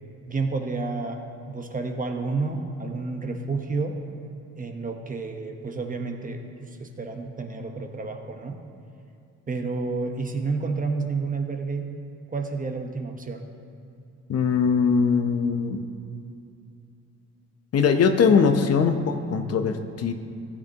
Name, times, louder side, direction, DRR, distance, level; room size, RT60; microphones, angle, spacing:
voice 1, 0.3-4.0 4.6-8.6 9.5-11.9 12.3-13.5, right 3 dB, 25° right, 4 dB, 1.1 m, -30 dB
voice 2, 14.3-15.8 17.7-20.1, left 5 dB, 55° left, 7 dB, 0.8 m, -21 dB
16.0 x 8.1 x 2.9 m, 2.6 s
cardioid pair, 90°, 30 cm